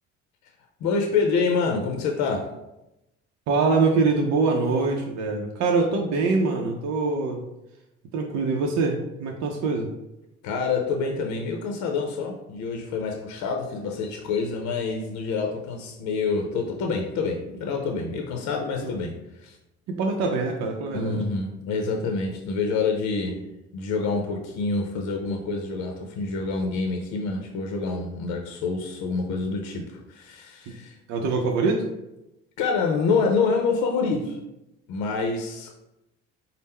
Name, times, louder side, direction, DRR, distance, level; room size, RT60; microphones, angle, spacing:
voice 1, 0.8-2.5 10.4-19.6 20.9-23.4 23.7-31.0 32.6-34.4 34.9-35.9, left 4 dB, 75° left, 2 dB, 0.6 m, -27 dB
voice 2, 3.5-7.4 8.1-9.9 18.8-18.9 19.9-21.2 30.7-30.8 31.1-31.8, right 4 dB, 70° right, 1 dB, 0.6 m, -24 dB
4.2 x 2.0 x 3.5 m, 0.92 s
supercardioid pair, 80°, 29 cm